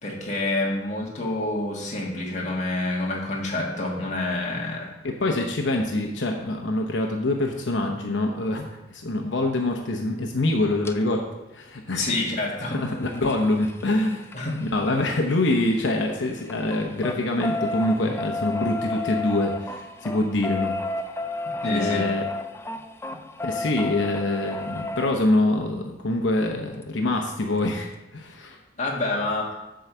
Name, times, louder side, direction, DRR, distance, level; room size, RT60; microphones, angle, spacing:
voice 1, 0.0-4.9 11.9-12.8 14.3-14.6 21.4-22.1 23.1-23.2 28.8-29.5, left 2 dB, 40° left, -2 dB, 1.7 m, -28 dB
voice 2, 5.0-11.2 11.5-12.1 12.7-14.3 14.6-20.7 21.6-22.2 23.4-28.6, left 2 dB, 75° left, 2 dB, 0.9 m, -25 dB
sound 1, 10.8-10.9 12.6-16.1 16.4-25.1 26.8-26.9 27.2-27.3 27.6-27.7, left 3 dB, 15° left, 0.4 m, -32 dB
7.9 x 4.8 x 6.8 m, 0.99 s
head